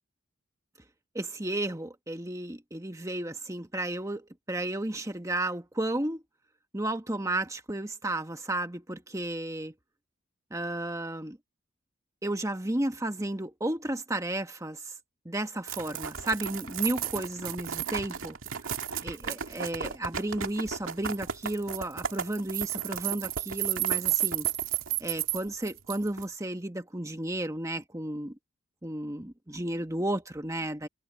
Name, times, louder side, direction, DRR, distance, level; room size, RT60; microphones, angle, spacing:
voice 1, 1.1-6.2 6.7-9.7 10.5-11.4 12.2-14.9 15.2-18.4 18.6-18.8 19.0-24.5 25.0-28.3 28.8-30.9, right 1 dB, 15° right, 1.4 m, -33 dB
sound 1, 15.7-26.2, right 10 dB, 90° right, 2.1 m, -32 dB
head